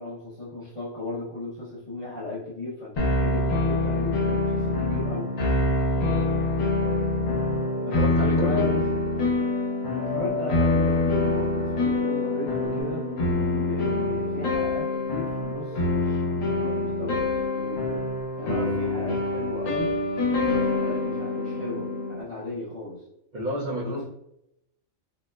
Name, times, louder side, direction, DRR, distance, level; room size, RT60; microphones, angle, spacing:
voice 1, 0.0-5.3 7.8-8.9 9.9-13.1 13.6-18.1 18.4-19.9 20.3-23.0 23.8-24.0, left 2 dB, 35° left, -8 dB, 0.6 m, -35 dB
sound 1, 3.0-22.2, left 2 dB, 85° left, 1.1 m, -25 dB
sound 2, 6.0-12.8, left 4 dB, 30° right, 0.8 m, -36 dB
voice 2, 8.0-8.7 23.3-24.0, equal, 60° right, -4 dB, 0.5 m, -31 dB
4.0 x 2.0 x 2.2 m, 0.80 s
omnidirectional pair, 1.3 m